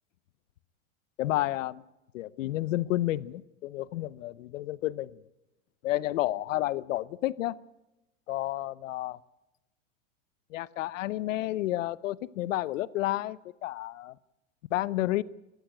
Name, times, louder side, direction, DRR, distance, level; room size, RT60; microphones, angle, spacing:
voice 1, 1.2-1.8 2.1-5.1 5.8-7.5 8.3-9.2 10.5-14.2 14.7-15.2, left 15 dB, 85° left, 20 dB, 0.9 m, -31 dB
21.0 x 14.0 x 9.0 m, 0.98 s
supercardioid pair, 180°, 37 cm